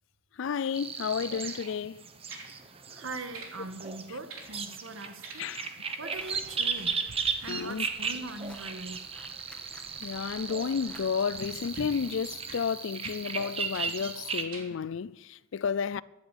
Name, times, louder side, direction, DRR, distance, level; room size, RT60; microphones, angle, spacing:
voice 1, 0.4-2.0 5.4-5.7 7.5-7.9 10.0-16.0, left 6 dB, 60° left, 0.4 m, -32 dB
sound 1, 0.7-14.4, right 5 dB, 30° right, 1.0 m, -36 dB
sound 2, 1.3-1.6 2.3-2.6 3.3-3.6 4.3-4.5 5.2-5.7 6.0-11.1 11.7-12.0 12.5-12.6 13.0-13.2 13.7-13.9 14.5-14.7 15.3-15.4, right 3 dB, 90° right, 3.3 m, -48 dB
voice 2, 2.9-5.5 6.0-7.0 7.4-9.0, right 2 dB, 70° right, 1.5 m, -41 dB
sound 3, 6.1-12.4, left 1 dB, 5° left, 1.6 m, -54 dB
13.5 x 10.5 x 8.3 m
head